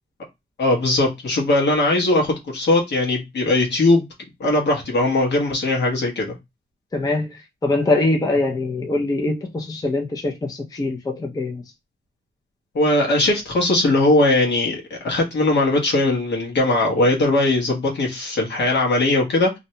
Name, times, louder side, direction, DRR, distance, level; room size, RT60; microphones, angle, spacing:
voice 1, 0.6-4.0 4.4-6.3 12.7-19.6, left 2 dB, 75° left, 1.1 m, -19 dB
voice 2, 6.9-11.6, left 2 dB, 20° left, 0.4 m, -23 dB
2.6 x 2.1 x 2.7 m
wide cardioid pair, 155°, 18 cm